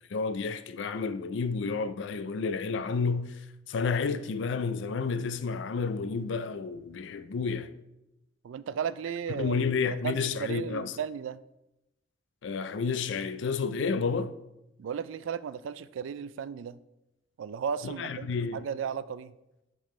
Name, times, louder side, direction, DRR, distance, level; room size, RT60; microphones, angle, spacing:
voice 1, 0.1-3.4 3.7-7.7 9.4-10.9 12.4-14.3 17.8-18.7, left 5 dB, 70° left, 0.4 m, -30 dB
voice 2, 8.4-9.6 9.8-11.4 14.8-16.8 17.4-19.3, right 7 dB, 90° right, 0.3 m, -35 dB
8.6 x 3.6 x 3.2 m
head